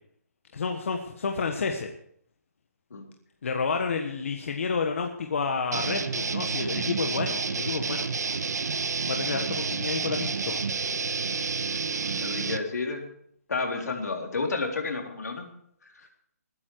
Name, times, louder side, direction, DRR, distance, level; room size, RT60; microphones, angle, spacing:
voice 1, 0.5-1.9 3.4-8.1 9.1-10.6, left 5 dB, 50° left, 4 dB, 1.4 m, -30 dB
sound 1, 5.7-12.6, right 5 dB, 85° right, 1.2 m, -29 dB
voice 2, 12.0-13.1 13.5-15.5 15.9-16.1, left 4 dB, 80° left, 2 dB, 3.7 m, -31 dB
20.0 x 9.7 x 4.7 m, 0.69 s
hypercardioid pair, 170°, 9 cm